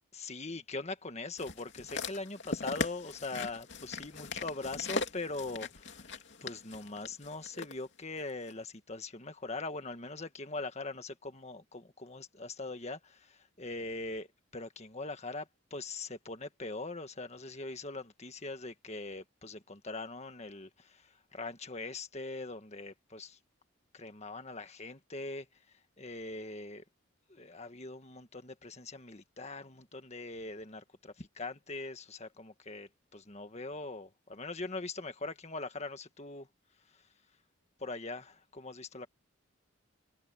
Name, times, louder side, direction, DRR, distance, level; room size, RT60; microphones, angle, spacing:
voice 1, 0.1-23.4 23.9-25.5 26.0-26.8 27.3-36.5 37.8-39.1, left 3 dB, 30° left, 1.6 m, -42 dB
sound 1, 1.4-7.7 8.5-8.6, left 3 dB, 60° left, 3.0 m, -39 dB
head